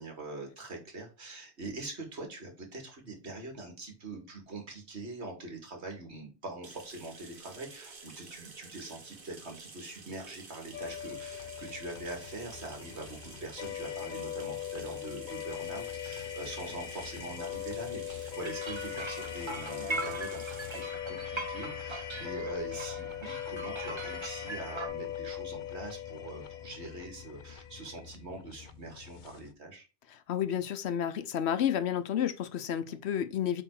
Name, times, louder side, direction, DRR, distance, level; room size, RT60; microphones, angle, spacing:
voice 1, 0.0-29.9 32.9-33.0, right 2 dB, 75° right, 2.3 m, -43 dB
sound 1, 6.6-26.1, right 4 dB, 50° right, 1.3 m, -52 dB
sound 2, 10.7-29.5, left 11 dB, 50° left, 0.7 m, -40 dB
sound 3, 18.4-24.9, right 3 dB, 30° right, 0.8 m, -40 dB
voice 2, 30.1-33.6, left 9 dB, 75° left, 0.9 m, -31 dB
7.4 x 3.6 x 4.6 m
omnidirectional pair, 1.1 m